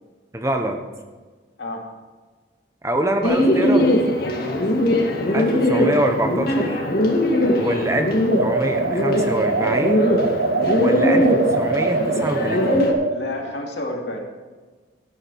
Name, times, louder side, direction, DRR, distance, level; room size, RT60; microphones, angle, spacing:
voice 1, 0.3-0.8 2.8-3.9 5.3-6.8 7.6-8.1 8.4-10.1 10.7-12.9, right 1 dB, 15° right, 5 dB, 1.0 m, -25 dB
Bird, 3.2-12.9, equal, 50° left, 2.0 m, -20 dB
voice 2, 4.2-4.5 7.4-7.9 13.1-14.2, left 1 dB, 70° left, 1 dB, 2.5 m, -30 dB
sound 1, 8.3-13.2, right 3 dB, 75° right, 0.9 m, -23 dB
13.0 x 12.5 x 4.7 m, 1.3 s
head